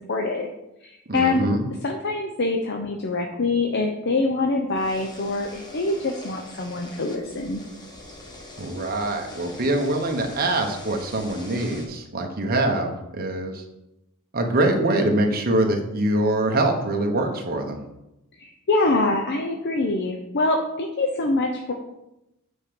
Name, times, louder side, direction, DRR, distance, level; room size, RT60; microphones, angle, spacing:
voice 1, 0.1-0.5 0.8-1.5 1.8-7.6 18.4-21.7, left 2 dB, 50° left, 3 dB, 0.7 m, -25 dB
voice 2, 1.1-1.6 8.6-13.6 14.3-17.8, right 1 dB, 45° right, 3 dB, 1.1 m, -24 dB
sound 1, 4.7-11.9, left 1 dB, 20° left, 1.3 m, -42 dB
8.4 x 4.5 x 5.2 m, 0.90 s
head